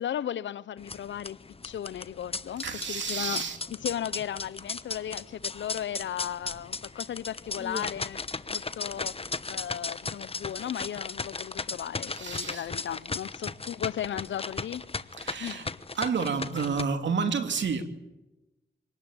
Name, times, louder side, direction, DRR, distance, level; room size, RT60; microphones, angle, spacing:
voice 1, 0.0-1.4 1.6-3.4 3.7-8.2 8.5-9.2 9.5-14.8 15.4-15.7, left 10 dB, 80° left, 0.8 m, -35 dB
sound 1, 0.8-16.8, left 4 dB, 30° left, 1.1 m, -36 dB
voice 2, 2.6-3.6 12.1-12.7 15.2-15.7 16.0-17.8, right 5 dB, 75° right, 2.8 m, -30 dB
24.5 x 19.5 x 9.0 m
cardioid pair, 60°, 19 cm